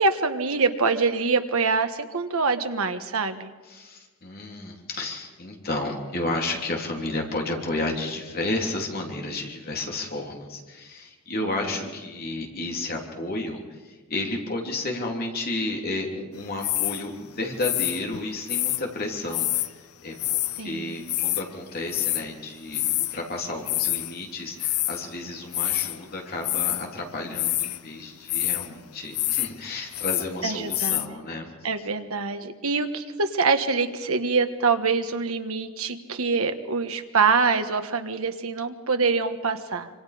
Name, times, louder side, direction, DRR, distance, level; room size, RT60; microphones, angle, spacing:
voice 1, 0.0-3.5 20.6-20.9 30.4-31.2 31.6-39.9, right 4 dB, 70° right, 7 dB, 1.4 m, -25 dB
voice 2, 3.7-19.6 20.0-31.5, left 2 dB, 45° left, 0 dB, 3.4 m, -32 dB
sound 1, 16.6-17.1 17.6-18.8 19.3-19.7 20.2-20.6 20.9-21.4 21.9-22.2 22.7-23.2 23.5-24.1 24.6-25.0 25.5-26.0 26.4-26.9 27.3-27.8 28.3-28.7 29.1-29.5 29.8-30.3 30.7-31.1, left 15 dB, 75° left, 0.6 m, -26 dB
26.0 x 24.5 x 5.1 m, 1.3 s
head